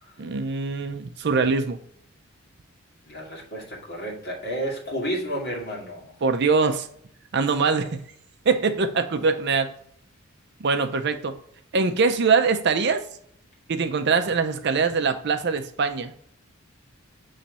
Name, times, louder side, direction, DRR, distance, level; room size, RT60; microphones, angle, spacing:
voice 1, 0.2-1.8 6.2-6.9 7.3-8.1 8.5-9.7 10.6-11.4 11.7-13.0 13.7-16.1, right 4 dB, 55° right, 8 dB, 0.5 m, -23 dB
voice 2, 3.0-6.1, equal, 50° left, -3 dB, 2.1 m, -31 dB
7.2 x 3.2 x 4.1 m, 0.63 s
head